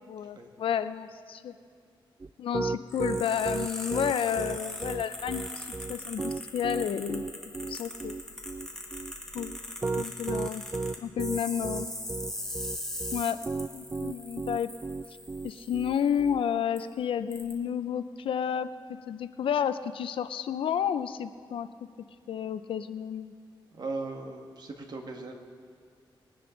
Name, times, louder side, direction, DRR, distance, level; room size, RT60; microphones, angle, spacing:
voice 1, 0.0-1.5 2.4-7.2 7.7-8.2 9.3-9.5 10.0-10.6 11.0-11.9 13.1-13.4 13.7-14.7 15.4-18.7 19.1-21.7 22.3-23.3, left 8 dB, 80° left, 12 dB, 0.6 m, -31 dB
Piano, 2.2-16.4, right 3 dB, 25° right, 0.3 m, -34 dB
sound 1, 2.9-16.3 16.8-16.9 17.3-17.5, left 1 dB, 5° left, 1.9 m, -41 dB
voice 2, 23.7-25.3, right 3 dB, 50° right, 2 dB, 1.8 m, -38 dB
21.5 x 10.0 x 3.9 m, 2.2 s
cardioid pair, 95°, 9 cm